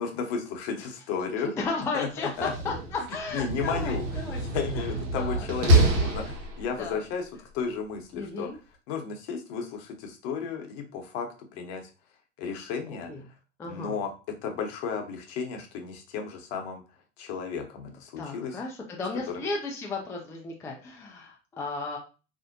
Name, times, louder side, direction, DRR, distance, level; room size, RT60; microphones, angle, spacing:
voice 1, 0.0-1.5 1.9-2.1 2.4-2.5 3.3-4.0 4.3-7.3 7.5-8.5 8.9-11.8 12.4-13.1 13.6-14.1 14.4-16.8 17.2-18.6, left 6 dB, 55° left, 4 dB, 0.8 m, -33 dB
voice 2, 1.4-4.4 5.2-5.5 6.8-7.0 8.1-8.6 13.1-13.2 13.6-14.0 18.2-22.0, left 3 dB, 10° left, 1 dB, 0.3 m, -34 dB
Slam, 2.2-6.9, right 2 dB, 70° right, 0.7 m, -26 dB
2.5 x 2.1 x 2.6 m, 0.33 s
hypercardioid pair, 90°, 37 cm